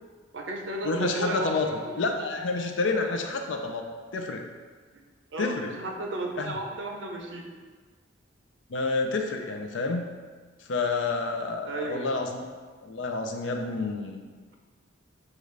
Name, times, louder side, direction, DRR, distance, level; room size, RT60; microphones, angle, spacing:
voice 1, 0.3-2.0 3.1-3.2 5.3-7.5 11.7-12.1, right 2 dB, 65° right, 1 dB, 0.6 m, -34 dB
voice 2, 0.8-1.7 2.0-3.8 4.1-4.4 5.4-5.7 6.4-6.6 8.7-10.1 10.6-12.5 12.8-14.3, left 3 dB, 70° left, 4 dB, 0.5 m, -29 dB
6.6 x 2.4 x 3.2 m, 1.5 s
head